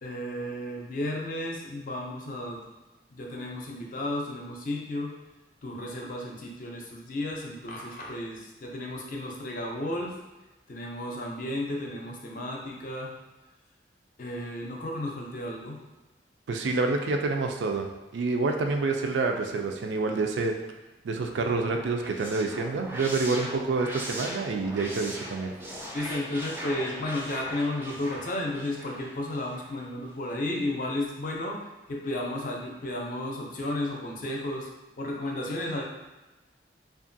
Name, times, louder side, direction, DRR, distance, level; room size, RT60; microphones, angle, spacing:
voice 1, 0.0-2.6 3.1-5.1 5.6-10.1 10.7-13.1 14.2-15.8 25.9-31.6 31.9-34.7 35.0-35.8, left 1 dB, 50° left, -1 dB, 0.5 m, -33 dB
voice 2, 16.5-17.9 18.1-20.5 21.0-25.5, right 3 dB, 90° right, 3 dB, 0.4 m, -27 dB
sound 1, 21.8-29.8, equal, 15° right, 0.3 m, -40 dB
2.8 x 2.4 x 2.6 m, 1.1 s
head